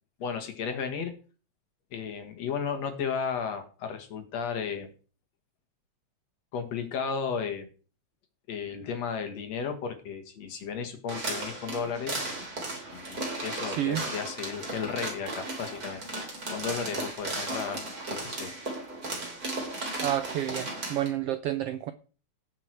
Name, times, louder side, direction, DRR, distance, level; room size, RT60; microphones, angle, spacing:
voice 1, 0.2-1.1 1.9-4.9 6.5-7.7 8.5-12.1 12.9-16.0 16.5-17.8 18.1-18.5, left 6 dB, 65° left, 6 dB, 2.8 m, -34 dB
sound 1, 11.1-21.1, right 2 dB, 30° right, 3.5 m, -35 dB
voice 2, 13.7-14.0 20.0-21.9, right 12 dB, 80° right, 11 dB, 1.4 m, -30 dB
18.0 x 6.0 x 4.7 m, 0.39 s
omnidirectional pair, 3.3 m